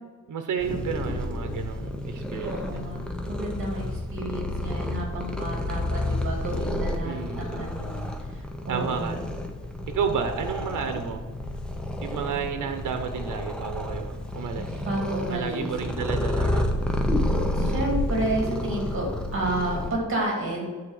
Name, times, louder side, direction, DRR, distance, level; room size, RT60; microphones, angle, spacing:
voice 1, 0.3-2.8 7.0-7.4 8.7-9.2 9.9-11.2 12.0-14.9 15.3-16.8, right 7 dB, 80° right, 7 dB, 0.8 m, -31 dB
Purr, 0.6-19.9, left 1 dB, 5° left, 0.6 m, -30 dB
voice 2, 2.4-3.0 3.3-9.2 14.5-15.7 17.4-20.6, right 1 dB, 40° right, -2 dB, 2.5 m, -31 dB
8.6 x 4.2 x 6.4 m, 1.4 s
wide cardioid pair, 175°, 31 cm